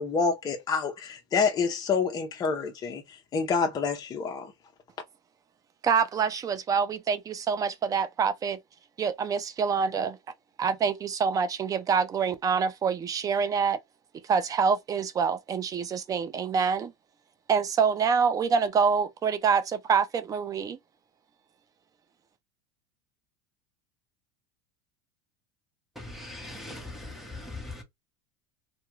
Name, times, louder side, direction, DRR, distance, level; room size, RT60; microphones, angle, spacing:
voice 1, 0.0-4.5, left 5 dB, 30° left, 0.6 m, -28 dB
voice 2, 5.8-8.6 9.0-10.2 10.6-13.8 14.2-16.9 17.5-20.8, right 6 dB, 25° right, 0.4 m, -26 dB
voice 3, 26.0-27.8, left 2 dB, ahead, 0.9 m, -40 dB
2.3 x 2.2 x 3.0 m
hypercardioid pair, 105°, 14 cm